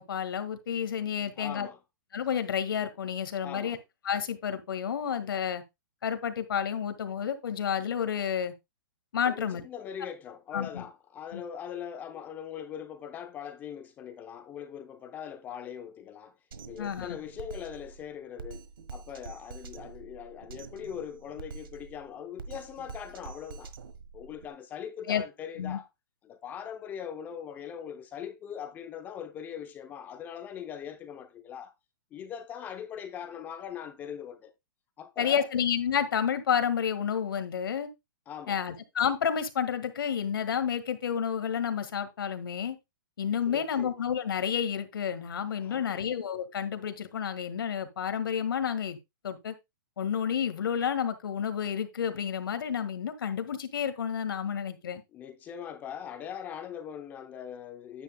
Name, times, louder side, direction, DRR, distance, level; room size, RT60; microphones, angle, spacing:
voice 1, 0.0-1.7 2.1-3.8 4.0-5.6 6.0-8.5 9.1-9.6 10.5-10.8 11.3-11.4 16.8-17.2 25.1-25.2 25.6-25.8 35.2-37.9 38.5-42.7 43.2-49.0 49.2-49.5 50.0-55.0, left 8 dB, 80° left, 1.7 m, -30 dB
voice 2, 1.4-1.8 3.4-3.8 9.2-16.3 16.7-18.6 18.9-23.7 24.1-25.9 26.2-31.7 32.1-34.5 35.0-35.5 38.3-38.6 43.5-43.9 45.6-46.0 55.1-58.0, left 8 dB, 15° left, 0.6 m, -41 dB
Drum kit, 16.5-24.5, right 5 dB, 85° right, 1.4 m, -46 dB
9.7 x 9.2 x 2.2 m
hypercardioid pair, 160°, 11 cm